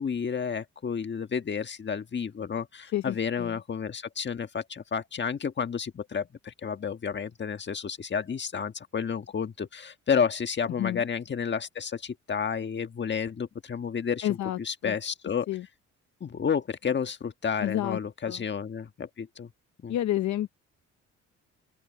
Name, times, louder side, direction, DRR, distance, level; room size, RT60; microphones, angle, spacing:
voice 1, 0.0-14.3 14.6-15.5 16.2-19.5 19.8-19.9, left 6 dB, 35° left, 1.5 m, -31 dB
voice 2, 2.9-3.6 10.8-11.0 14.2-14.9 15.5-15.7 17.6-18.0 18.2-18.4 19.9-20.5, left 13 dB, 70° left, 0.8 m, -30 dB
open air
cardioid pair, 90°, 30 cm